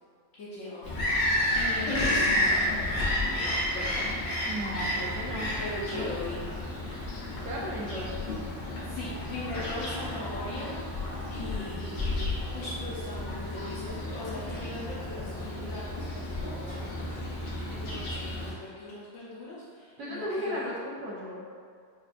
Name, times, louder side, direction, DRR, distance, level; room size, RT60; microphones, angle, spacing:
voice 1, 0.3-0.9 1.5-2.4 3.4-4.0 5.6-6.4 8.8-10.8 11.3-20.7, left 2 dB, 60° left, -8 dB, 0.9 m, -40 dB
Bird vocalization bird call bird song, 0.8-18.5, left 1 dB, 85° left, 1.5 m, -31 dB
voice 2, 4.5-5.5 5.9-6.1 7.4-8.1 20.0-21.4, equal, 70° right, -4 dB, 1.1 m, -35 dB
5.9 x 2.4 x 2.4 m, 2.1 s
omnidirectional pair, 1.9 m